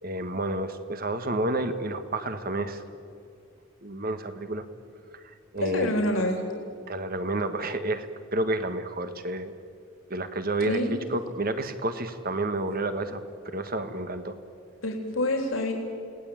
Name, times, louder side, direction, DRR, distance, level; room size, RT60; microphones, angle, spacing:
voice 1, 0.0-2.8 3.8-4.6 5.1-5.2 5.5-5.9 6.9-8.1 8.3-9.5 10.1-14.4, right 2 dB, 45° right, 9 dB, 1.6 m, -30 dB
voice 2, 5.6-6.4 10.7-10.9 14.8-15.7, left 1 dB, 85° left, 2 dB, 3.7 m, -27 dB
29.5 x 19.0 x 9.0 m, 2.4 s
head